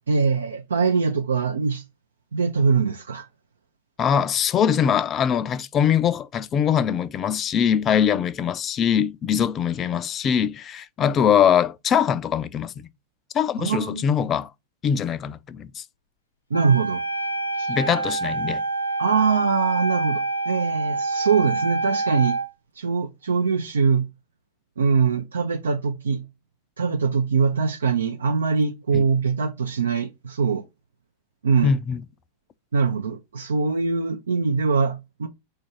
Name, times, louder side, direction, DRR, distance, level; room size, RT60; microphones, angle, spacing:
voice 1, 0.1-1.8 2.3-3.3 13.6-14.0 16.5-17.0 17.6-17.8 19.0-22.4 22.8-24.1 24.8-26.2 26.8-30.6 31.4-31.7 32.7-35.3, right 5 dB, 70° right, 0.4 m, -23 dB
voice 2, 4.0-12.9 13.3-14.5 14.8-15.8 17.7-18.6 28.9-29.0 31.6-32.0, left 8 dB, 30° left, 0.3 m, -22 dB
Wind instrument woodwind instrument, 16.5-22.5, right 3 dB, 85° left, 0.5 m, -26 dB
4.5 x 2.4 x 4.3 m
figure-of-eight pair, 90°, 0 cm